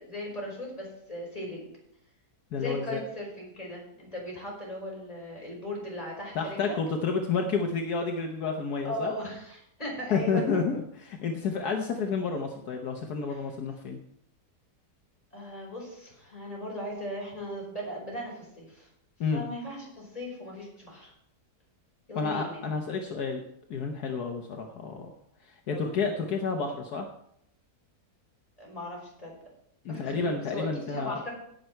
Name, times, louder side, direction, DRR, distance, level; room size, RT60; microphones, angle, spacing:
voice 1, 0.0-1.8 2.6-6.8 8.8-10.4 13.3-13.4 15.3-18.9 19.3-21.1 22.1-22.6 25.7-26.0 28.6-29.3 29.9-31.3, left 1 dB, 20° left, -3 dB, 5.4 m, -38 dB
voice 2, 2.5-3.0 6.3-9.1 10.1-10.8 11.0-14.0 19.2-19.4 22.1-23.4 23.7-25.1 25.4-27.0 29.8-31.2, left 5 dB, 75° left, 3 dB, 1.5 m, -30 dB
17.5 x 6.5 x 4.5 m, 0.73 s
omnidirectional pair, 1.7 m